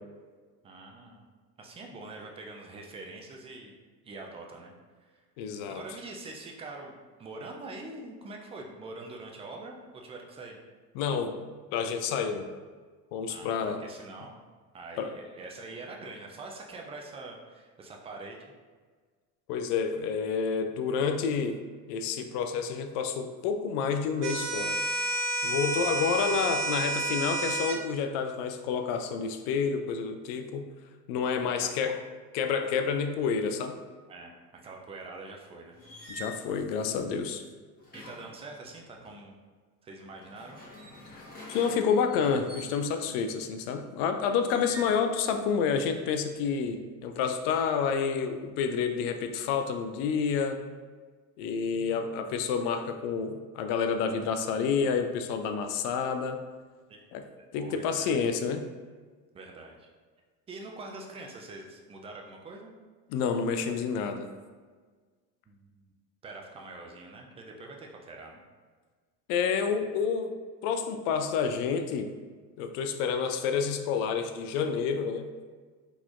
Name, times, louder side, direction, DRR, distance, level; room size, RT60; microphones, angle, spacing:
voice 1, 0.6-1.2 1.6-3.7 4.0-4.7 5.0-10.6 13.3-14.3 14.7-18.5 25.7-26.0 26.3-26.4 31.4-32.0 34.1-35.8 37.9-39.4 39.8-40.6 44.6-44.7 56.9-57.1 57.6-58.2 59.3-59.9 60.5-62.7 65.5-65.9 66.2-68.4, right 2 dB, 15° right, 1 dB, 0.3 m, -44 dB
voice 2, 5.4-5.8 11.0-11.4 11.7-12.5 13.1-13.8 15.0-15.1 19.5-21.6 21.9-24.8 25.4-30.7 31.1-32.0 32.3-33.8 36.1-37.4 41.1-41.2 41.5-50.6 51.4-56.4 57.1-57.2 57.5-58.7 63.1-64.3 69.3-70.3 70.6-72.1 72.6-75.3, left 6 dB, 55° left, 7 dB, 0.5 m, -29 dB
sound 1, 24.2-27.8, right 1 dB, 80° right, 0.6 m, -30 dB
sound 2, 35.7-36.4 37.8-39.1 40.1-43.1 44.4-45.0 45.5-46.0, equal, 20° left, 1.4 m, -46 dB
3.9 x 2.9 x 2.5 m, 1.5 s
hypercardioid pair, 70°, 49 cm